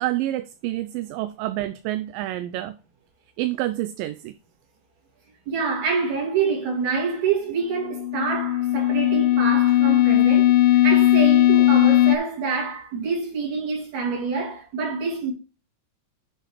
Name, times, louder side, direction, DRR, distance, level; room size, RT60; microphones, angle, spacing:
voice 1, 0.0-2.8 3.4-4.4, right 15 dB, 80° right, 2.2 m, -28 dB
voice 2, 5.5-15.3, right 5 dB, 55° right, 3.8 m, -26 dB
sound 1, 7.8-12.2, left 13 dB, 85° left, 2.3 m, -18 dB
8.1 x 4.1 x 4.8 m
omnidirectional pair, 4.1 m